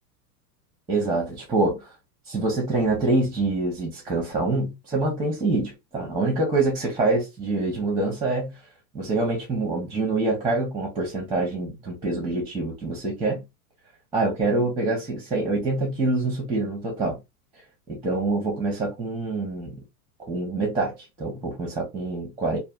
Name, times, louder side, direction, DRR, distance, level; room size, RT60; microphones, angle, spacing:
voice 1, 0.9-1.9 2.3-8.6 8.9-13.4 14.1-17.2 17.9-19.8 20.3-22.6, right 2 dB, 10° right, 0.9 m, -25 dB
3.3 x 2.6 x 2.4 m
supercardioid pair, 145°, 47 cm